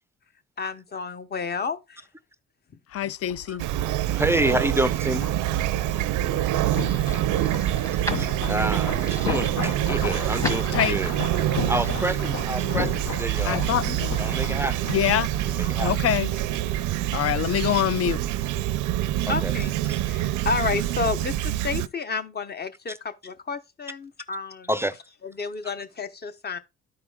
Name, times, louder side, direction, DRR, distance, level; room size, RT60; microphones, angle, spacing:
voice 1, 0.6-2.0 19.3-19.8 20.0-24.7 25.2-26.6, left 5 dB, 35° left, 0.8 m, -31 dB
sound 1, 2.9-16.7 17.0-17.1, left 8 dB, 80° left, 0.8 m, -36 dB
voice 2, 2.9-3.6 10.7-11.0 13.5-14.2 14.9-15.3 15.8-16.3 17.1-18.2, left 11 dB, 50° left, 0.4 m, -25 dB
Fowl / Chirp tweet, 3.6-21.9, right 13 dB, 90° right, 0.5 m, -26 dB
voice 3, 4.1-5.3 8.2-11.1 11.7-13.6 14.2-14.9 15.5-15.9 19.2-19.5 19.9-20.0 24.7-25.0, right 1 dB, 10° right, 0.4 m, -28 dB
sound 2, 6.2-11.2, equal, 10° left, 1.1 m, -39 dB
13.0 x 4.9 x 2.2 m
cardioid pair, 90°, 30 cm